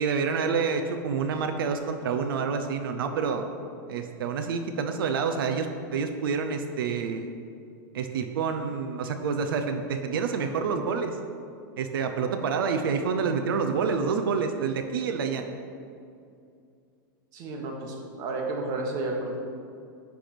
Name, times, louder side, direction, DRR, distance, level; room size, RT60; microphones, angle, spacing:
voice 1, 0.0-3.5 3.9-7.3 7.9-11.2 11.8-15.5, right 5 dB, 90° right, 5 dB, 0.6 m, -28 dB
voice 2, 17.3-19.4, right 2 dB, 30° right, 0 dB, 1.2 m, -32 dB
10.0 x 3.5 x 5.9 m, 2.4 s
supercardioid pair, 165°, 11 cm